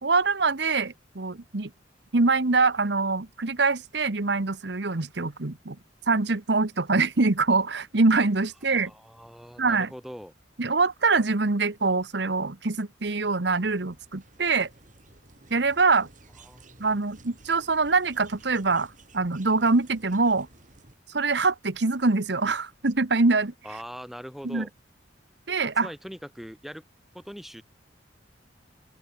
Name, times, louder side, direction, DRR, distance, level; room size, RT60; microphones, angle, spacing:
voice 1, 0.0-1.7 2.1-5.8 6.1-8.9 9.6-9.9 10.6-14.7 15.5-16.1 16.8-20.5 21.1-23.5 24.4-24.6 25.5-25.9, right 3 dB, 65° right, 1.2 m, -24 dB
voice 2, 8.6-10.3 16.4-17.0 23.6-24.7 25.8-26.8 27.1-27.6, equal, ahead, 3.8 m, -42 dB
sound 1, 13.4-20.9, right 2 dB, 45° right, 4.9 m, -54 dB
open air
head